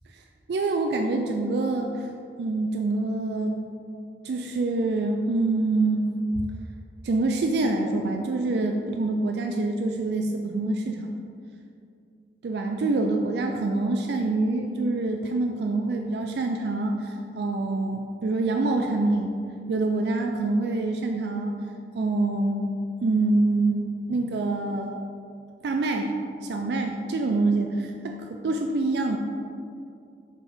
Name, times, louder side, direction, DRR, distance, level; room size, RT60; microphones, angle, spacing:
voice 1, 0.5-2.1 2.4-3.7 4.2-6.1 7.0-11.1 12.4-19.3 19.7-21.6 21.9-22.6 23.0-24.9 25.6-26.1 26.4-29.2, right 2 dB, 70° right, 3 dB, 0.4 m, -26 dB
7.1 x 3.5 x 4.3 m, 2.5 s
head